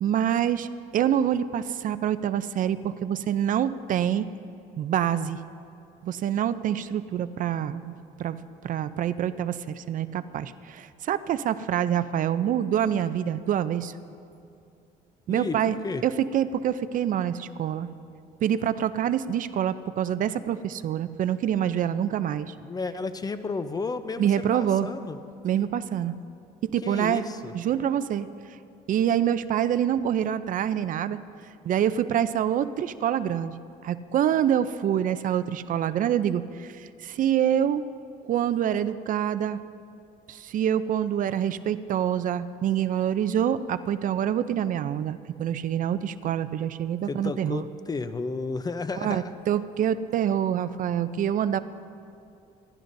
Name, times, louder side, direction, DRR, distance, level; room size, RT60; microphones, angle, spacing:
voice 1, 0.0-0.7 0.9-4.3 4.8-5.4 6.0-7.9 8.2-8.4 8.6-13.9 15.3-15.8 16.0-17.9 18.4-22.5 24.2-24.9 25.4-26.1 26.6-27.2 27.5-28.3 28.9-31.2 31.6-33.5 33.8-37.8 38.2-39.6 40.3-47.7 49.0-51.6, right 10 dB, 50° right, 13 dB, 0.5 m, -26 dB
voice 2, 15.3-16.0 22.6-25.2 26.8-27.5 47.0-49.3, left 4 dB, 25° left, 11 dB, 0.6 m, -32 dB
27.0 x 12.0 x 2.6 m, 2.5 s
cardioid pair, 110°, 17 cm